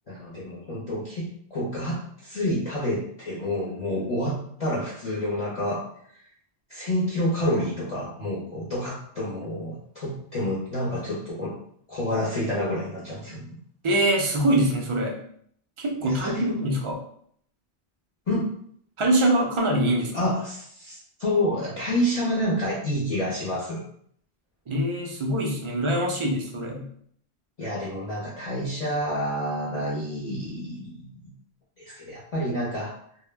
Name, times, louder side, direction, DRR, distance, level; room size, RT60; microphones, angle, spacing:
voice 1, 0.1-5.8 6.1-6.2 6.7-11.5 11.9-13.5 16.0-16.4 18.3-18.5 20.1-23.8 27.6-31.3 31.8-33.0, left 1 dB, 40° left, -8 dB, 0.7 m, -28 dB
voice 2, 13.8-15.2 15.8-17.0 19.0-20.3 24.7-26.9, right 1 dB, 45° right, 0 dB, 0.4 m, -24 dB
2.1 x 2.1 x 3.2 m, 0.64 s
omnidirectional pair, 1.1 m